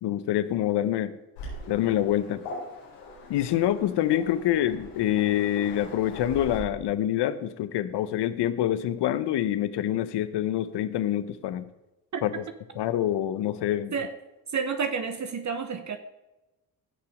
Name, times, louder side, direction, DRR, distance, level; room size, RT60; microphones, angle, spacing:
voice 1, 0.0-1.1 1.7-2.4 3.3-11.7 12.2-12.4 12.8-13.9, left 12 dB, 65° left, 13 dB, 1.0 m, -26 dB
Waves surf, 1.4-6.6, left 1 dB, 85° left, 4.5 m, -42 dB
voice 2, 14.5-16.0, right 5 dB, 40° right, 8 dB, 1.2 m, -30 dB
17.0 x 5.7 x 5.0 m, 0.99 s
supercardioid pair, 65°, 44 cm